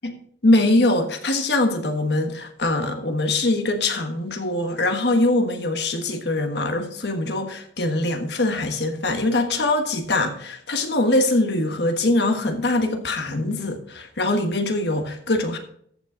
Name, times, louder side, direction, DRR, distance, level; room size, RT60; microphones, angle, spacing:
voice 1, 0.4-15.6, left 2 dB, 65° left, 6 dB, 1.4 m, -22 dB
14.0 x 6.3 x 3.9 m, 0.65 s
head